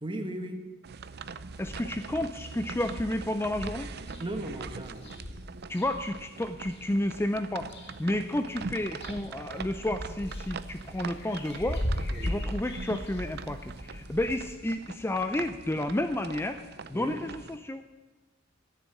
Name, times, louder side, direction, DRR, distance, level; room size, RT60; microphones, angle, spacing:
voice 1, 0.0-0.8 4.2-5.1 12.1-12.4 16.9-17.2, right 1 dB, 25° right, 6 dB, 1.2 m, -37 dB
sound 1, 0.8-17.6, right 4 dB, 55° right, 0.6 m, -43 dB
sound 2, 1.5-2.1 2.4-2.5 2.8-6.8 7.3-8.2 8.5-14.3, equal, 55° left, 1.7 m, -38 dB
voice 2, 1.6-3.9 5.7-7.7 8.0-11.8 12.2-16.6 16.9-17.8, left 1 dB, 10° left, 8 dB, 0.5 m, -31 dB
13.0 x 7.2 x 9.7 m, 1.2 s
head